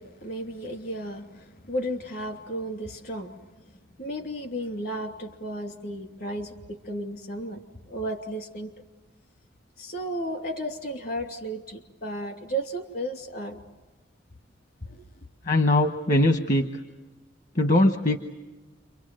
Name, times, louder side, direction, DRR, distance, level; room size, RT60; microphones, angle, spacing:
voice 1, 0.0-3.3 4.0-7.6 7.9-8.7 9.8-13.6 14.8-15.1, right 1 dB, 60° left, 2.8 m, -34 dB
voice 2, 15.5-16.7 17.6-18.2, left 1 dB, 45° left, 1.1 m, -21 dB
29.0 x 24.5 x 7.7 m
head